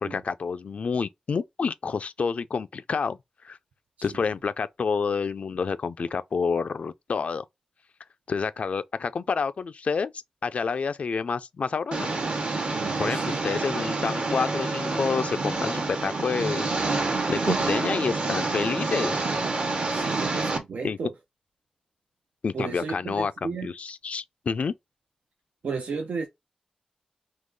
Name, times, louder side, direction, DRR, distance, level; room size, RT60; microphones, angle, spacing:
voice 1, 0.0-3.2 3.4-3.6 4.0-7.4 8.3-10.1 10.4-12.1 13.0-19.2 20.8-21.0 22.4-24.7, left 5 dB, 65° left, 0.3 m, -29 dB
Engine, 11.9-20.6, right 3 dB, 50° right, 1.0 m, -28 dB
voice 2, 12.8-13.4 17.3-17.7 19.9-21.1 22.5-23.7 25.6-26.3, right 5 dB, 90° right, 0.6 m, -33 dB
3.7 x 2.9 x 3.7 m
wide cardioid pair, 125°, 2 cm